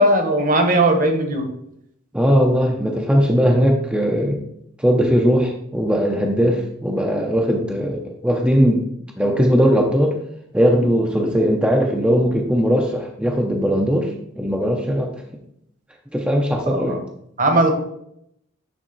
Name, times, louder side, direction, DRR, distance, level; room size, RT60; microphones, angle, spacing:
voice 1, 0.0-1.5 16.7-17.0 17.4-17.7, right 1 dB, 40° right, 4 dB, 1.1 m, -18 dB
voice 2, 2.1-4.4 4.8-8.9 9.2-10.2 10.5-15.2 16.1-17.0, equal, 5° right, 0 dB, 0.5 m, -19 dB
9.2 x 3.6 x 3.9 m, 0.75 s
head